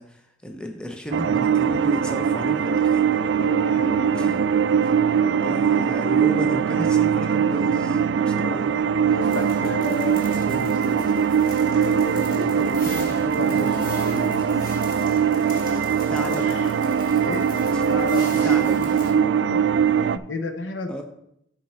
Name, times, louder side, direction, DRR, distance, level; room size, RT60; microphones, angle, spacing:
voice 1, 0.0-2.9 4.1-4.4 4.8-5.0 5.4-9.3 16.1-16.5 17.7-18.0 18.4-19.2 19.8-19.9 20.9-21.0, equal, 5° left, 3 dB, 0.8 m, -34 dB
sound 1, 1.1-20.2, right 7 dB, 70° right, 0.3 m, -21 dB
voice 2, 3.4-4.4 8.4-8.7 9.1-11.2 11.6-14.8 16.1-16.7 17.2-17.4 17.9-18.4 19.4-19.6 20.3-21.0, left 2 dB, 75° left, 7 dB, 0.9 m, -33 dB
sound 2, 9.2-19.1, left 3 dB, 45° left, 1.5 m, -43 dB
10.5 x 4.7 x 4.3 m, 0.77 s
head